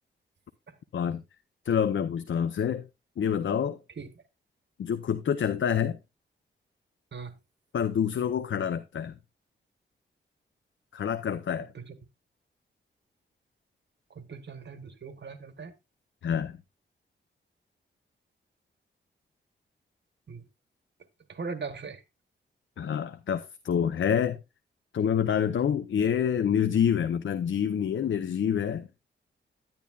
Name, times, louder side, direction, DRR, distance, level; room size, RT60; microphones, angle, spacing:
voice 1, 1.6-2.9 3.2-3.8 4.8-6.0 7.7-9.1 10.9-11.7 16.2-16.6 22.8-24.4 24.9-28.9, left 8 dB, 80° left, 0.7 m, -27 dB
voice 2, 14.1-15.7 20.3-20.4 21.3-22.0, right 4 dB, 65° right, 1.5 m, -39 dB
10.5 x 10.5 x 2.4 m
wide cardioid pair, 85°, 20 cm